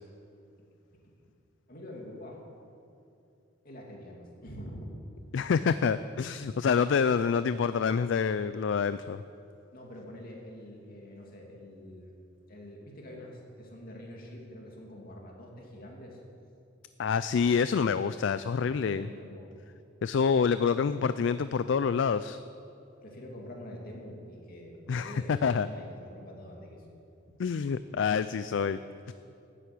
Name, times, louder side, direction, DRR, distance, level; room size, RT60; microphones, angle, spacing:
voice 1, 1.7-2.4 3.6-5.3 9.7-12.2 12.5-16.2 18.9-19.5 23.0-26.8, equal, 50° left, -1 dB, 2.6 m, -45 dB
voice 2, 5.3-9.2 17.0-19.1 20.0-22.4 24.9-25.7 27.4-28.8 29.1-29.2, left 6 dB, 65° left, 13 dB, 0.4 m, -27 dB
12.5 x 9.3 x 8.7 m, 2.7 s
head